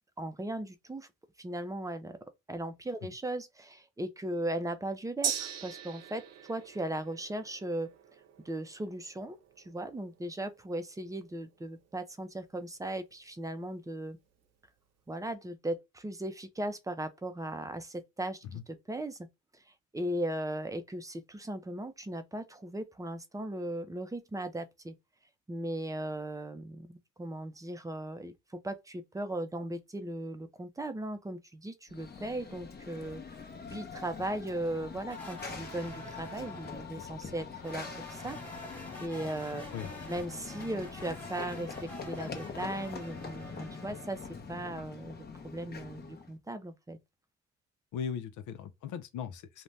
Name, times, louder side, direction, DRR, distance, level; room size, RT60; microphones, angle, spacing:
voice 1, 0.2-1.1 1.4-2.1 2.5-7.9 8.4-9.4 9.6-14.2 15.1-19.3 19.9-24.9 25.5-28.3 28.6-33.4 33.7-38.4 39.0-44.2 44.5-45.2 45.4-47.0, right 1 dB, 10° right, 0.5 m, -37 dB
Gong, 5.2-13.0 13.3-13.4, right 8 dB, 60° right, 0.7 m, -42 dB
Run / Train, 31.9-46.3, left 5 dB, 35° left, 0.8 m, -44 dB
sound 1, 35.1-37.0 37.6-44.3, right 1 dB, 5° left, 1.2 m, -48 dB
voice 2, 47.9-49.6, left 8 dB, 80° left, 0.6 m, -38 dB
2.6 x 2.1 x 3.2 m
cardioid pair, 90°, 30 cm